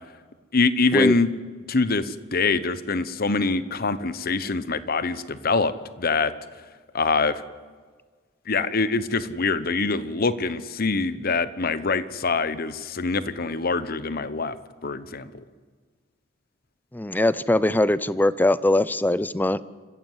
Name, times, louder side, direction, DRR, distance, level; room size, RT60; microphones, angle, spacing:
voice 1, 0.5-1.3 1.7-6.3 6.9-7.4 8.5-14.6 14.8-15.4, left 4 dB, 50° left, 14 dB, 1.0 m, -24 dB
voice 2, 16.9-19.6, left 1 dB, 10° left, 17 dB, 0.5 m, -21 dB
27.0 x 15.0 x 8.0 m, 1.5 s
head